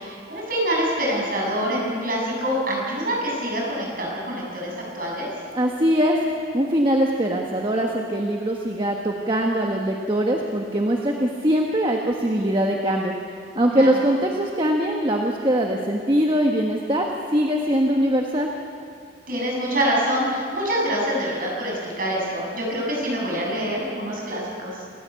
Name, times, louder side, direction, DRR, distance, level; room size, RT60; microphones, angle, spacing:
voice 1, 0.0-5.3 13.7-13.9 19.3-24.8, equal, 45° right, -3 dB, 7.7 m, -25 dB
voice 2, 5.5-13.1 13.5-18.5, equal, 25° right, 0 dB, 1.3 m, -22 dB
28.5 x 15.0 x 8.3 m, 2.3 s
head